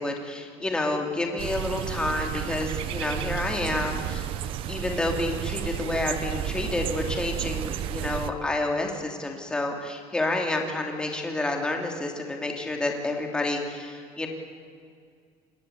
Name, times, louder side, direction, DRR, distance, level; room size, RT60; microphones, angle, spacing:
voice 1, 0.0-4.3 4.7-14.3, left 2 dB, 10° left, 2 dB, 2.8 m, -29 dB
sound 1, 1.4-8.3, right 11 dB, 50° right, 1.1 m, -32 dB
27.0 x 20.5 x 8.2 m, 2.1 s
cardioid pair, 175°, 11 cm